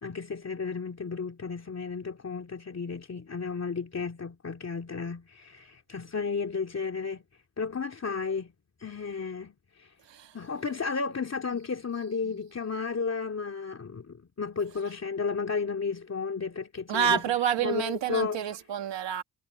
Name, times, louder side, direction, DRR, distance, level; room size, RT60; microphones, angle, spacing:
voice 1, 0.0-7.2 7.6-8.5 8.8-9.9 10.3-17.2 17.6-18.4, left 5 dB, 40° left, 2.9 m, -33 dB
voice 2, 16.9-19.2, right 9 dB, 90° right, 2.3 m, -28 dB
cardioid pair, 90°, 42 cm